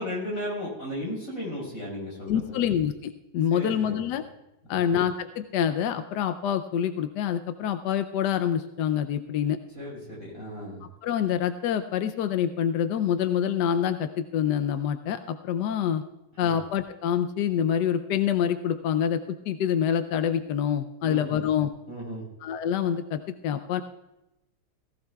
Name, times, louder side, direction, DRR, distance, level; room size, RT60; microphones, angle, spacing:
voice 1, 0.0-2.6 3.5-4.0 4.7-4.9 9.7-10.9 16.4-16.5 21.0-21.4 21.9-22.2, left 1 dB, 40° left, -4 dB, 5.7 m, -35 dB
voice 2, 2.3-4.2 4.7-9.6 11.0-16.0 16.4-21.7 22.4-23.8, left 9 dB, 75° left, 9 dB, 1.0 m, -26 dB
18.0 x 15.5 x 2.3 m, 0.95 s
omnidirectional pair, 2.3 m